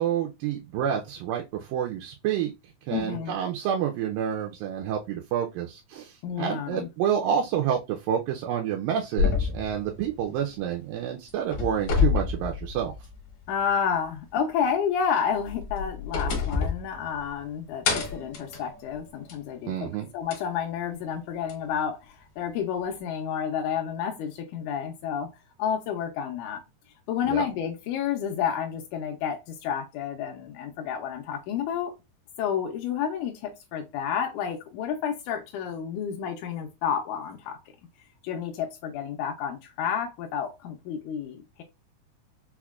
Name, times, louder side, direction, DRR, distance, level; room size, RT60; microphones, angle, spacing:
voice 1, 0.0-2.5 2.9-12.9 19.7-20.1 27.3-27.4, right 9 dB, 80° right, 2.1 m, -28 dB
voice 2, 2.9-3.3 6.2-6.9 13.5-25.3 25.6-26.6 27.1-31.9 32.4-37.6 38.2-41.6, left 8 dB, 85° left, 1.7 m, -30 dB
sound 1, 9.2-10.9 11.3-13.3 13.6-13.7 15.4-17.5 17.8-19.5 20.3-20.4 21.5-21.6, left 6 dB, 70° left, 1.3 m, -28 dB
5.7 x 2.1 x 2.3 m
omnidirectional pair, 4.0 m